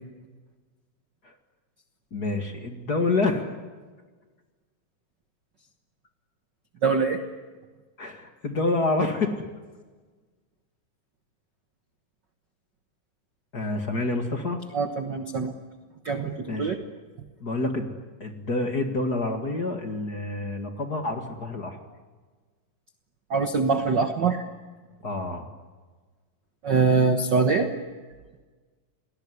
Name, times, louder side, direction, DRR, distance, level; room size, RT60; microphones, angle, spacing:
voice 1, 2.1-3.5 8.0-9.5 13.5-14.6 16.5-16.8 17.4-17.9 18.2-21.8 25.0-25.5, left 2 dB, 35° left, 5 dB, 2.2 m, -28 dB
voice 2, 6.8-7.2 14.7-15.5 16.0-16.8 23.3-24.5 26.6-27.7, right 4 dB, 50° right, 6 dB, 1.4 m, -23 dB
29.5 x 20.0 x 9.9 m, 1.4 s
omnidirectional pair, 3.7 m